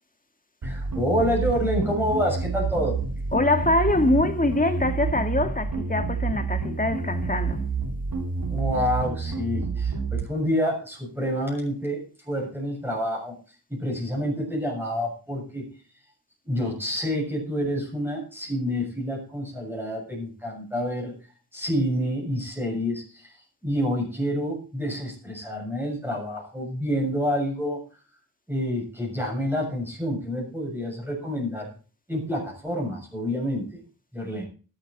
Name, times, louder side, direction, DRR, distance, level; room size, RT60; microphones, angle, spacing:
voice 1, 0.6-3.0 8.5-13.4 13.7-15.7 16.5-21.1 21.5-23.3 23.6-27.8 28.5-31.7 32.1-33.8 34.1-34.5, equal, 5° right, 7.0 m, -28 dB
sound 1, 0.6-10.2, right 4 dB, 70° right, 2.7 m, -29 dB
voice 2, 3.3-7.6, left 2 dB, 20° left, 2.1 m, -24 dB
12.5 x 12.5 x 4.1 m
wide cardioid pair, 85°, 37 cm